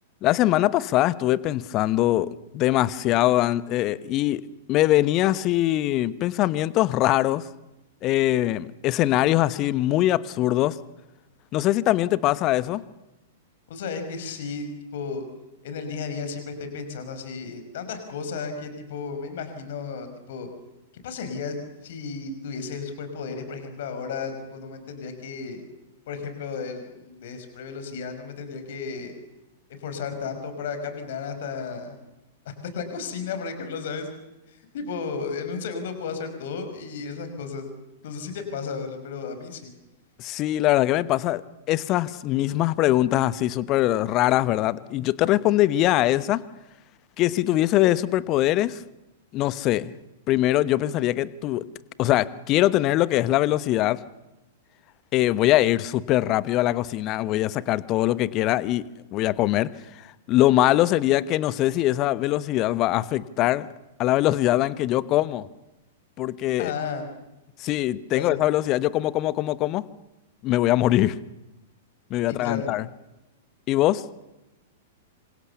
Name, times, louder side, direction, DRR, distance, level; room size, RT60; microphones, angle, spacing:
voice 1, 0.2-4.4 4.7-7.4 8.0-10.8 11.5-12.8 40.2-41.4 41.7-46.4 47.2-48.8 49.3-49.9 50.3-51.7 52.0-54.0 55.1-59.7 60.0-63.7 64.0-65.5 66.2-66.7 67.6-69.9 70.4-71.2 72.1-72.8 73.7-74.0, left 15 dB, 35° left, 18 dB, 1.1 m, -22 dB
voice 2, 13.7-15.2 15.6-20.5 21.0-21.6 21.8-25.6 26.1-29.1 29.7-32.0 32.7-34.1 34.5-37.7 38.0-39.7 66.6-67.1 68.1-68.3 72.3-72.7, left 5 dB, 55° left, 8 dB, 5.1 m, -33 dB
27.0 x 26.0 x 7.0 m, 0.97 s
figure-of-eight pair, 100°, 0 cm